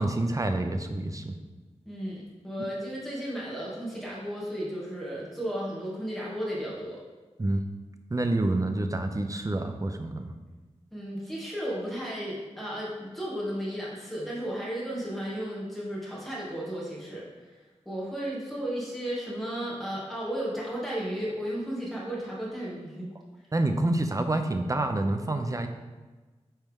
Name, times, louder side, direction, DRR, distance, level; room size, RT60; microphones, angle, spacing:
voice 1, 0.0-1.3 7.4-7.6 8.1-10.3 23.5-25.7, right 2 dB, 30° right, 6 dB, 0.6 m, -27 dB
voice 2, 1.9-7.0 10.9-17.2 17.9-23.1, equal, ahead, -6 dB, 2.4 m, -34 dB
8.8 x 4.4 x 3.7 m, 1.3 s
wide cardioid pair, 90°, 12 cm